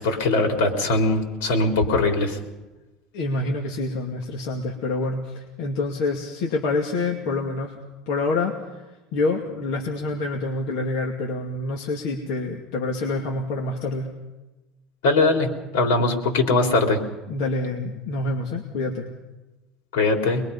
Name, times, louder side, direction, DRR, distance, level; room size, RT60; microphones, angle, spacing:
voice 1, 0.0-2.4 15.0-17.0 19.9-20.4, left 2 dB, 90° left, 3 dB, 3.9 m, -21 dB
voice 2, 3.1-7.8 8.1-8.8 9.1-14.1 16.0-16.1 17.3-19.1, left 2 dB, 55° left, 0 dB, 2.3 m, -27 dB
24.0 x 22.0 x 5.5 m, 1.1 s
cardioid pair, 175°, 0 cm